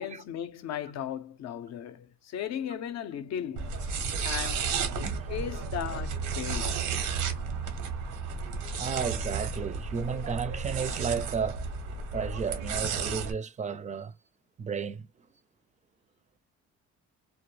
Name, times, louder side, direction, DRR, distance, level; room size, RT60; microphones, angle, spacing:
voice 1, 0.0-3.9 4.2-4.7 5.3-6.8, left 9 dB, 60° left, 0.5 m, -36 dB
sound 1, 3.6-13.3, right 5 dB, 90° right, 0.8 m, -33 dB
voice 2, 8.8-11.6 12.1-14.1 14.6-15.1, right 6 dB, 25° right, 0.4 m, -33 dB
2.2 x 2.1 x 3.0 m
cardioid pair, 90°, 30 cm